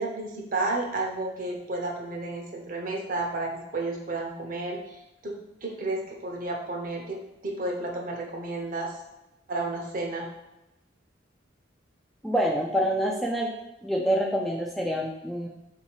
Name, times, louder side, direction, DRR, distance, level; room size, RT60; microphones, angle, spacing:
voice 1, 0.0-4.8 5.2-5.3 5.6-7.2 7.4-8.9 9.5-10.2, right 2 dB, 45° right, 0 dB, 0.8 m, -31 dB
voice 2, 12.2-13.5 13.8-15.5, equal, ahead, -2 dB, 0.3 m, -26 dB
3.6 x 2.8 x 4.6 m, 0.92 s
head